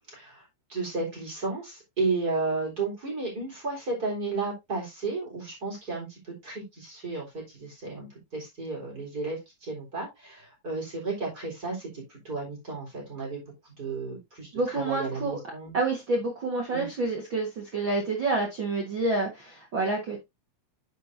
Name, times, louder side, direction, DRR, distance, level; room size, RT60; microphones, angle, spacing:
voice 1, 0.1-15.7 16.7-16.9, right 3 dB, 25° right, 3.9 m, -33 dB
voice 2, 14.5-15.4 15.7-20.2, right 3 dB, 60° right, 1.2 m, -28 dB
9.5 x 6.6 x 2.7 m
omnidirectional pair, 4.6 m